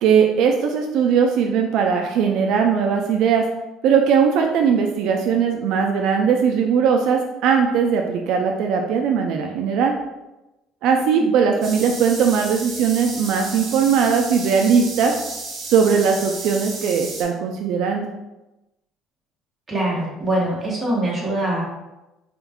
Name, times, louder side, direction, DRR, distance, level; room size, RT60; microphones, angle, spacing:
voice 1, 0.0-3.5 3.8-9.9 10.8-15.1 15.6-18.1, right 6 dB, 60° right, 2 dB, 0.3 m, -19 dB
sound 1, 11.6-17.2, right 3 dB, 40° right, 1.1 m, -33 dB
voice 2, 19.7-21.6, right 1 dB, 15° right, -5 dB, 1.1 m, -23 dB
4.3 x 2.3 x 3.5 m, 1.0 s
cardioid pair, 170°, 0 cm